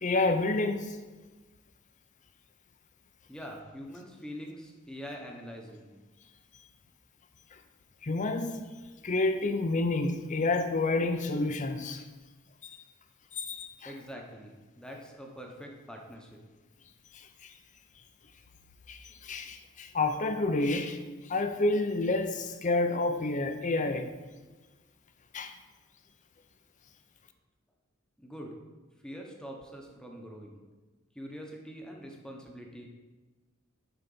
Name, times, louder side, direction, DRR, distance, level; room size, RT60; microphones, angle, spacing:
voice 1, 0.0-1.0 8.0-8.6 9.0-12.0 13.3-13.9 17.1-17.5 18.9-21.0 21.3-24.1 25.3-25.5, left 2 dB, 35° left, 0.6 m, -29 dB
voice 2, 3.3-5.9 13.8-16.4 28.2-28.6 29.0-30.6 31.1-32.9, equal, 5° left, 1.0 m, -44 dB
10.0 x 4.0 x 5.5 m
head